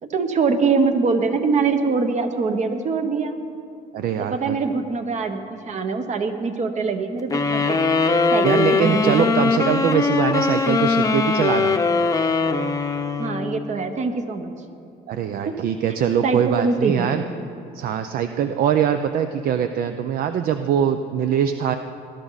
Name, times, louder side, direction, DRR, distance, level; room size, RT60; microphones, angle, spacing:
voice 1, 0.0-3.4 4.2-7.8 8.3-9.3 13.2-14.5 15.4-15.6 16.2-17.2, right 4 dB, 45° right, 7 dB, 1.3 m, -23 dB
voice 2, 3.9-4.6 8.4-11.8 15.1-17.2 17.7-21.8, right 9 dB, 60° right, 9 dB, 0.6 m, -22 dB
sound 1, 7.3-13.7, left 4 dB, 20° left, 0.7 m, -21 dB
20.0 x 11.5 x 4.1 m, 2.6 s
cardioid pair, 110°, 17 cm